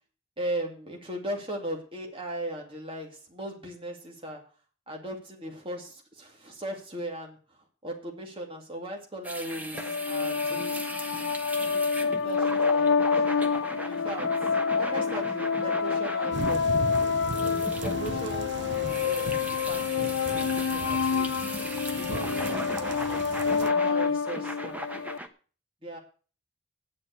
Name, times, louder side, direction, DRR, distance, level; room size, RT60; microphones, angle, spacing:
voice 1, 0.4-4.4 4.9-10.8 11.6-13.2 13.9-14.3 14.8-16.9 17.8-18.7 19.0-19.4 19.7-21.3 22.0-24.8 25.8-26.0, right 1 dB, 25° right, 1 dB, 2.3 m, -38 dB
sound 1, 9.2-25.3, equal, 10° right, 1.0 m, -38 dB
sound 2, 9.7-25.2, left 5 dB, 90° left, 0.5 m, -28 dB
sound 3, 16.3-23.7, right 3 dB, 60° right, 0.7 m, -38 dB
9.6 x 7.8 x 7.9 m, 0.39 s
head